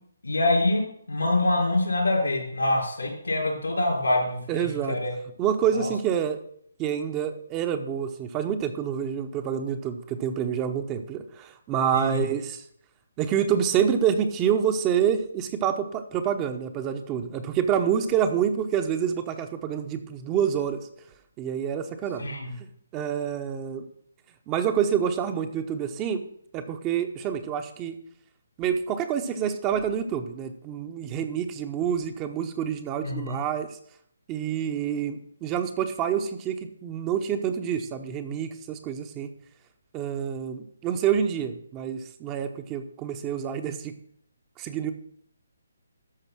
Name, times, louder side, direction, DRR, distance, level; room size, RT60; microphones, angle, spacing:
voice 1, 0.2-5.1 5.7-5.9 11.9-12.2 22.2-22.5 33.0-33.4, left 2 dB, 80° left, 0 dB, 4.6 m, -25 dB
voice 2, 4.5-5.0 5.4-6.4 6.8-12.6 13.2-20.8 21.4-22.3 22.6-22.7 22.9-23.9 24.5-26.2 26.5-28.0 28.6-33.8 34.3-39.3 39.9-43.9 44.6-44.9, right 8 dB, 20° right, 7 dB, 0.9 m, -27 dB
12.5 x 4.9 x 6.3 m, 0.66 s
figure-of-eight pair, 145°, 0 cm